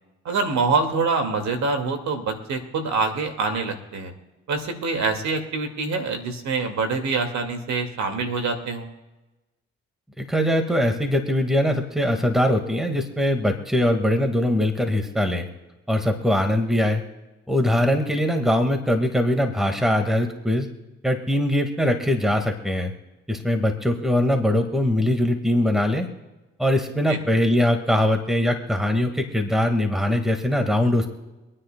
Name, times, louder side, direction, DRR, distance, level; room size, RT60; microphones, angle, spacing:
voice 1, 0.2-4.1 4.5-8.9 27.1-27.2, right 4 dB, 65° right, 5 dB, 2.2 m, -25 dB
voice 2, 10.2-15.5 15.9-17.0 17.5-20.7 21.0-22.9 23.3-26.1 26.6-31.1, left 1 dB, ahead, 5 dB, 1.8 m, -22 dB
26.0 x 9.8 x 2.3 m, 1.1 s
hypercardioid pair, 50°, 30 cm